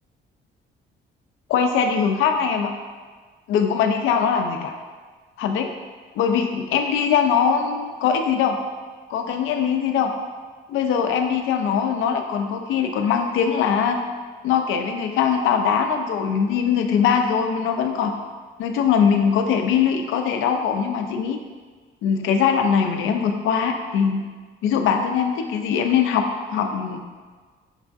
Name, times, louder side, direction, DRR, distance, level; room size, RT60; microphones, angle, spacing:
voice 1, 1.5-2.7 3.5-4.7 5.4-5.7 6.2-8.6 9.1-10.1 10.7-14.0 14.4-18.1 18.6-21.4 22.0-24.3 24.6-27.0, left 7 dB, 85° left, 5 dB, 0.4 m, -21 dB
5.3 x 2.5 x 2.4 m, 1.5 s
cardioid pair, 90°, 20 cm